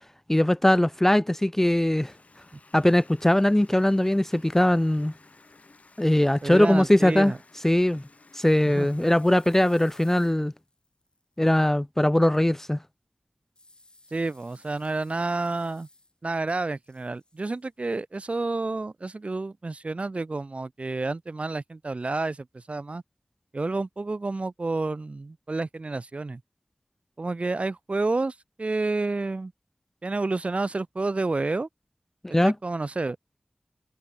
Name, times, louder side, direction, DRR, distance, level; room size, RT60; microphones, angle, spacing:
voice 1, 0.3-2.1 2.7-5.1 6.0-7.3 7.6-8.0 8.3-10.5 11.4-12.8 32.2-32.5, left 1 dB, 15° left, 0.3 m, -21 dB
Water tap faucet, 2.0-10.5, left 3 dB, 60° left, 2.7 m, -56 dB
voice 2, 6.4-7.4 8.7-8.9 14.1-15.9 16.2-23.0 23.5-26.4 27.2-29.5 30.0-31.7 32.4-33.2, right 3 dB, 50° right, 0.9 m, -29 dB
sound 1, 8.5-11.6 13.5-16.4 16.6-17.7, left 2 dB, 35° left, 3.7 m, -57 dB
wide cardioid pair, 60°, 3 cm